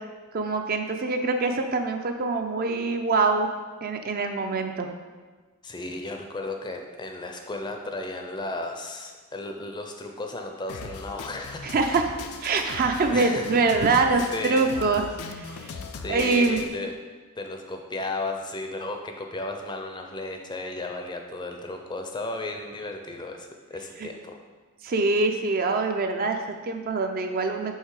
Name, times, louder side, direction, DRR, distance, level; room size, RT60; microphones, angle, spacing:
voice 1, 0.3-3.5 3.8-4.9 11.6-12.1 12.4-15.1 15.3-15.7 16.1-16.6 24.0-24.1 24.8-27.8, right 3 dB, 40° right, 5 dB, 0.4 m, -24 dB
voice 2, 5.6-11.7 12.5-12.6 13.1-13.5 14.3-14.7 16.0-16.9 17.4-24.4, left 2 dB, 20° left, 3 dB, 0.5 m, -34 dB
Drum kit, 10.7-16.7, left 4 dB, 85° left, 0.5 m, -39 dB
5.6 x 3.6 x 4.7 m, 1.4 s
head